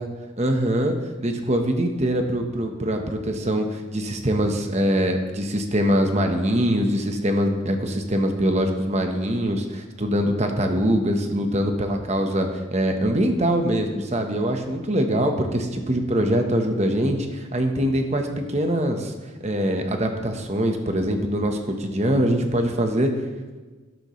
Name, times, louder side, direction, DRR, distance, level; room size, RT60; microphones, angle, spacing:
voice 1, 0.4-19.1 19.4-23.1, equal, 35° right, 4 dB, 1.1 m, -23 dB
12.5 x 12.0 x 3.2 m, 1.3 s
head